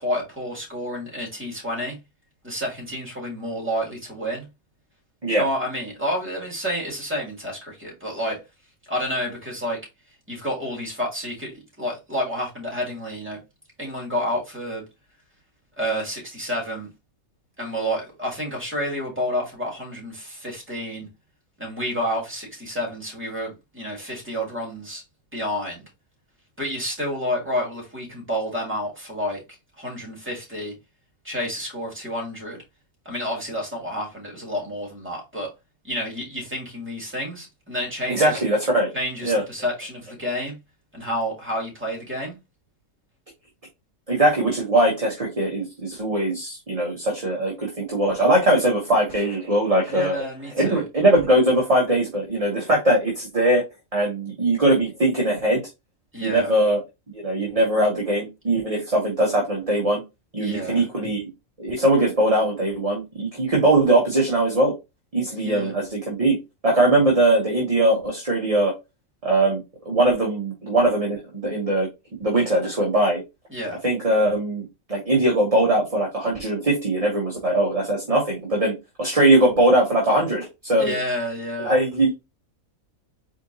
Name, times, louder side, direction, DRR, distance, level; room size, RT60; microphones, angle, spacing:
voice 1, 0.0-2.0 2.4-4.5 5.4-8.4 8.9-9.8 10.3-13.4 13.8-14.8 15.8-16.9 17.6-21.1 21.6-25.0 25.3-25.8 26.6-29.4 29.8-30.7 31.2-32.6 33.1-35.5 35.8-38.4 38.9-40.6 40.9-42.4 49.9-50.8 56.1-56.5 60.4-60.8 65.4-65.7 73.5-73.8 80.8-81.7, equal, 10° right, 2.1 m, -29 dB
voice 2, 38.1-38.9 39.2-39.4 44.1-50.2 50.5-53.6 53.9-55.6 56.2-56.8 57.1-60.0 60.3-61.3 61.6-64.7 65.1-66.4 66.6-68.7 69.2-71.9 72.2-73.2 73.8-80.9 81.6-82.1, right 1 dB, 25° right, 1.1 m, -21 dB
4.3 x 3.7 x 2.7 m
omnidirectional pair, 1.4 m